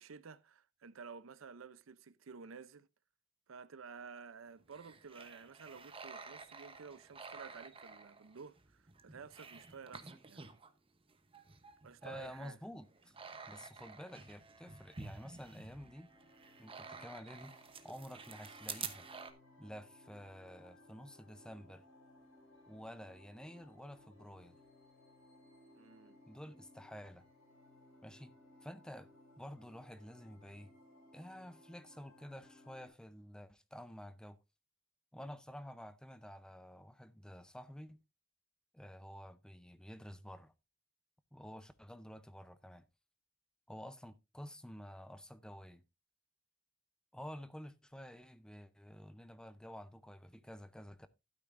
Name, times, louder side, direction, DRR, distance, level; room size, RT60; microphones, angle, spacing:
voice 1, 0.0-2.9 3.5-10.6 11.8-12.6 25.8-26.2, right 5 dB, 85° right, 0.6 m, -52 dB
sound 1, 4.6-10.7 11.1-19.3, right 5 dB, 25° right, 0.9 m, -51 dB
voice 2, 12.0-13.1 13.5-16.1 16.6-19.1 19.6-21.8 22.7-24.6 26.3-27.3 28.0-28.3 28.6-29.1 29.4-30.7 31.1-34.4 35.1-38.0 38.7-40.5 41.3-42.9 43.7-45.8 47.1-51.1, equal, 5° left, 0.6 m, -50 dB
sound 2, 16.0-32.9, left 1 dB, 85° left, 6.3 m, -62 dB
12.0 x 9.2 x 2.5 m
head